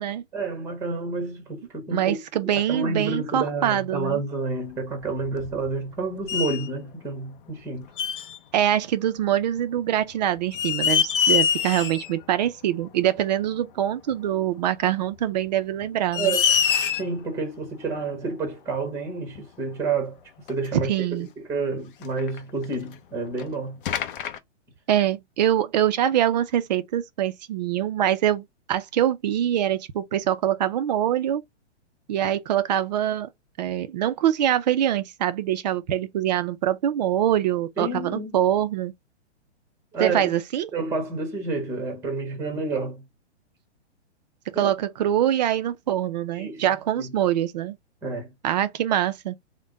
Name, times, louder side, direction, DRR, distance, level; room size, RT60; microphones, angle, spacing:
voice 1, 0.3-7.9 16.1-16.4 17.0-20.2 20.5-23.8 37.8-38.3 39.9-40.3 40.7-43.0 44.5-44.7 46.3-46.6 47.0-47.1 48.0-48.3, right 3 dB, 10° right, 1.1 m, -29 dB
voice 2, 1.9-4.2 8.5-16.3 20.8-21.3 24.9-31.4 32.1-33.3 33.6-38.9 40.0-40.7 44.5-47.8 48.4-49.4, right 11 dB, 40° right, 0.4 m, -24 dB
sound 1, 5.0-5.9 6.3-6.7 8.0-8.4 9.8-9.9 10.4-12.1 12.5-12.6 14.1-14.2 15.2-15.3 15.8-15.9 16.1-17.2 18.5-18.6 19.4-19.5 19.7-19.8 20.5-20.7 22.0-22.9 23.4-23.5 23.9-24.4, left 8 dB, 50° left, 0.6 m, -25 dB
3.3 x 2.2 x 3.7 m
hypercardioid pair, 140°, 35 cm